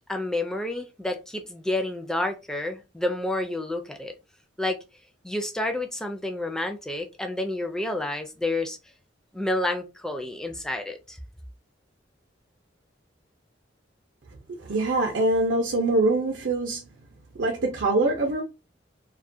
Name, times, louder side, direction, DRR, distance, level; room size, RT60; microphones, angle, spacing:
voice 1, 0.1-4.1 4.6-4.8 5.2-8.8 9.3-11.2, left 1 dB, 5° left, 0.3 m, -29 dB
voice 2, 14.6-16.9 17.4-18.4, right 2 dB, 85° right, 0.6 m, -24 dB
2.3 x 2.1 x 2.6 m
head